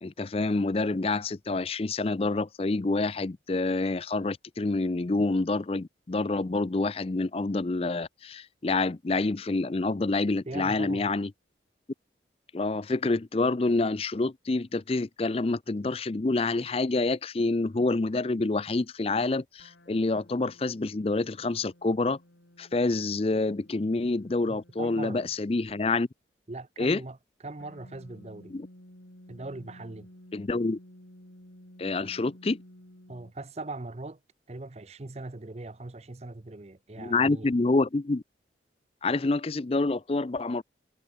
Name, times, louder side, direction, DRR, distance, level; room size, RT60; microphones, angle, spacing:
voice 1, 0.0-11.3 12.5-22.2 22.6-26.1 26.8-27.0 28.5-28.7 30.3-30.8 31.8-32.6 37.0-38.2 39.0-40.6, left 3 dB, 30° left, 0.5 m, -27 dB
voice 2, 10.5-11.1 24.5-25.3 26.5-27.2 27.4-28.6 29.3-30.1 33.1-34.2 34.5-37.5, right 2 dB, 35° right, 0.7 m, -40 dB
sound 1, 19.6-25.8 27.6-33.3, equal, 90° left, 5.7 m, -54 dB
head